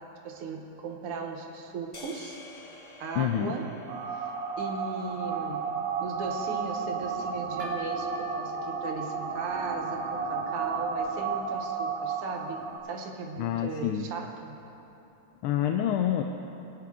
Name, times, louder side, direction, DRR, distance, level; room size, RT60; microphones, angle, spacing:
voice 1, 0.0-2.4 3.0-3.7 4.1-4.3 4.6-5.7 6.0-14.6, right 4 dB, 85° right, 2 dB, 2.0 m, -37 dB
sound 1, 1.9-6.3, left 2 dB, 35° left, 0.6 m, -50 dB
voice 2, 3.2-3.5 13.4-14.1 15.4-16.2, left 10 dB, 85° left, 5 dB, 1.5 m, -27 dB
sound 2, 3.9-12.8, right 5 dB, 65° right, 1.9 m, -33 dB
sound 3, 7.6-11.1, right 2 dB, 25° right, 3.1 m, -42 dB
20.5 x 9.5 x 3.7 m, 3.0 s
omnidirectional pair, 2.4 m